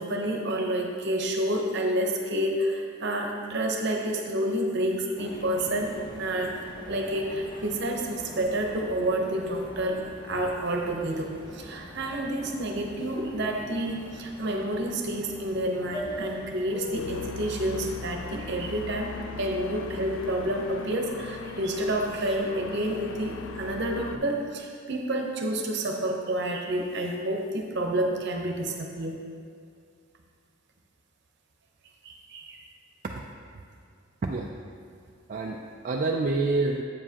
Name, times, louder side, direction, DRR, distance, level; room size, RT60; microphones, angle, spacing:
voice 1, 0.0-6.6 6.9-29.2 32.0-32.6, right 1 dB, 60° right, 2 dB, 0.8 m, -29 dB
sound 1, 5.2-20.9, left 1 dB, 20° left, 0.7 m, -43 dB
sound 2, 16.9-24.2, left 6 dB, 75° left, 0.3 m, -40 dB
voice 2, 35.3-36.8, right 3 dB, 40° right, 0 dB, 0.3 m, -28 dB
8.4 x 7.2 x 2.9 m, 2.3 s
head